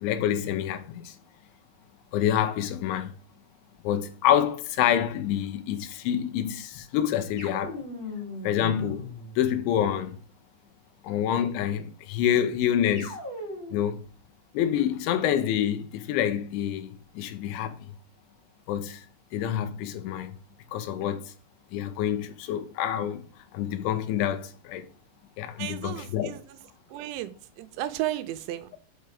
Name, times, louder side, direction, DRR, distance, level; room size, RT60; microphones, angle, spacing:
voice 1, 0.0-1.2 2.1-3.1 3.8-7.8 8.4-9.1 9.4-10.2 11.0-13.2 13.7-14.0 14.5-17.9 18.7-19.0 19.3-20.4 20.7-21.2 21.7-23.2 23.5-24.9 25.4-26.3, left 10 dB, 85° left, 3.3 m, -27 dB
sound 1, 7.4-9.9 12.9-14.0, left 2 dB, 30° left, 3.0 m, -39 dB
voice 2, 25.6-26.6 26.9-28.8, right 14 dB, 90° right, 3.0 m, -34 dB
6.5 x 5.7 x 4.9 m
omnidirectional pair, 5.3 m